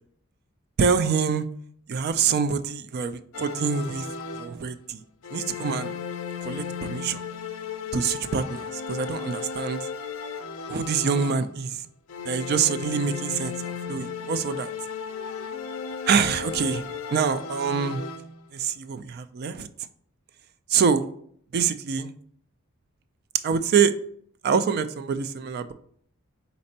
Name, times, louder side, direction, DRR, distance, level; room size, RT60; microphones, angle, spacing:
voice 1, 0.8-1.4 1.9-4.1 4.3-5.0 5.3-5.9 6.4-7.2 7.9-9.9 10.7-11.8 12.3-14.7 16.1-18.0 18.5-19.7 20.7-21.1 21.5-22.1 23.4-23.9 24.4-25.7, right 6 dB, 50° right, 12 dB, 0.3 m, -25 dB
sound 1, 3.3-4.8 5.2-11.7 12.1-18.5, left 6 dB, 65° left, 0.4 m, -35 dB
4.3 x 4.1 x 2.7 m, 0.63 s
head